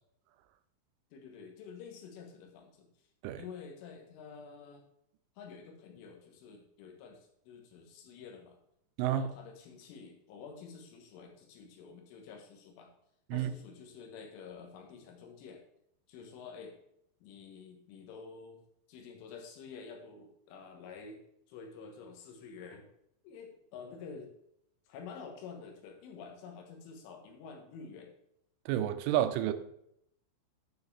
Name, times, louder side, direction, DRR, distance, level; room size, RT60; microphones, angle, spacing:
voice 1, 1.1-2.9 3.4-4.8 5.4-8.6 9.1-12.9 13.3-15.6 16.1-16.8 17.2-18.6 18.9-21.2 21.5-22.9 23.2-24.3 24.9-28.1, left 5 dB, 90° left, 3.8 m, -49 dB
voice 2, 28.7-29.5, right 11 dB, 90° right, 3.1 m, -30 dB
9.4 x 7.1 x 3.3 m
omnidirectional pair, 5.5 m